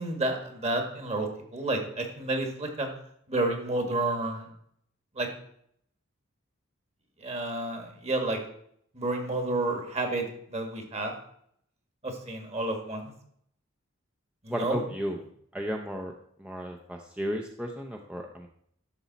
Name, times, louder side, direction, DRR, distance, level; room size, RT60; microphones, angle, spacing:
voice 1, 0.0-2.9 3.3-4.5 5.2-5.3 7.2-8.4 8.9-11.1 12.0-13.1 14.4-14.8, right 2 dB, 35° right, 4 dB, 1.8 m, -30 dB
voice 2, 14.5-15.2 15.5-18.5, equal, 5° right, 1 dB, 0.6 m, -34 dB
11.5 x 6.9 x 4.1 m, 0.68 s
head